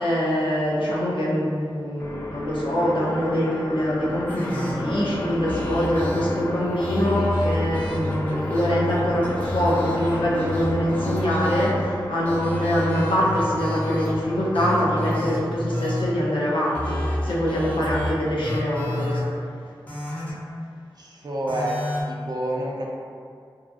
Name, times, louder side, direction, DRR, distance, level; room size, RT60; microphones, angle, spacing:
voice 1, 0.0-19.2, equal, 85° left, -6 dB, 0.6 m, -24 dB
sound 1, 2.0-15.3, left 1 dB, 35° left, 0.4 m, -34 dB
sound 2, 4.3-11.8 12.3-14.2 14.5-16.0 16.7-18.1 18.4-19.2 19.9-20.3 21.5-22.0, left 1 dB, 20° left, 0.8 m, -29 dB
voice 2, 21.0-21.7 22.1-22.9, right 1 dB, 55° right, -3 dB, 0.4 m, -28 dB
2.7 x 2.3 x 2.5 m, 2.2 s
wide cardioid pair, 60°, 8 cm